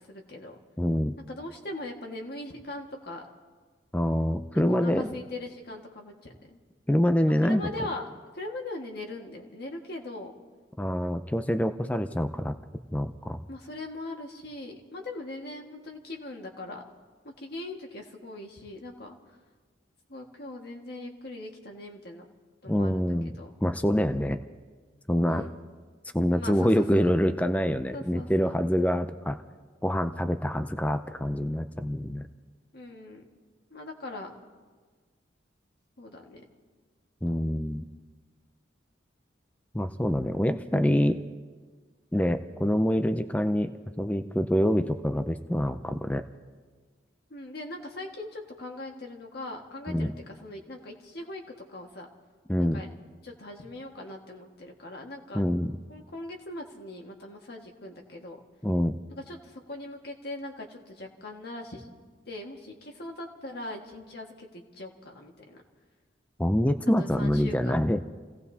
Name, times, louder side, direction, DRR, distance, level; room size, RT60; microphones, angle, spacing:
voice 1, 0.1-0.5 1.3-3.2 4.7-6.6 7.4-8.1 8.3-10.3 13.5-16.8 17.2-19.1 20.1-22.2 22.6-23.5 25.2-25.5 26.3-27.1 27.9-28.6 32.7-33.2 33.7-34.3 36.0-36.4 47.3-50.1 50.4-51.4 51.7-52.1 52.6-52.9 53.2-55.4 55.9-58.4 59.1-61.9 62.2-65.6 67.0-67.8, left 2 dB, 55° left, 1 dB, 1.7 m, -40 dB
voice 2, 0.8-1.1 3.9-5.1 6.9-7.7 10.8-12.6 12.9-13.4 22.7-24.4 25.1-25.4 26.1-29.4 29.8-32.3 37.2-37.9 39.7-41.2 42.1-43.7 44.0-46.2 49.9-50.1 52.5-52.8 55.3-55.7 58.6-59.0 66.4-68.0, equal, 10° left, 9 dB, 0.4 m, -26 dB
29.5 x 17.0 x 2.8 m, 1.5 s
head